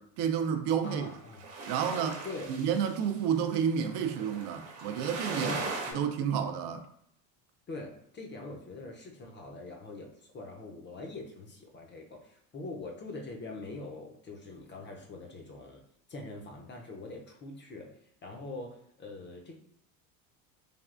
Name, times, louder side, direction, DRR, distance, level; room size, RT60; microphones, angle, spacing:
voice 1, 0.0-1.1 1.7-5.5 5.9-6.8, right 8 dB, 60° right, 0.5 m, -30 dB
voice 2, 0.8-1.4 2.2-2.5 5.4-6.0 7.7-15.8 16.1-18.0 18.2-19.5, left 2 dB, 25° left, 0.5 m, -43 dB
sound 1, 0.8-5.9, right 3 dB, 75° right, 0.9 m, -39 dB
3.4 x 2.4 x 2.4 m
supercardioid pair, 100°, 46 cm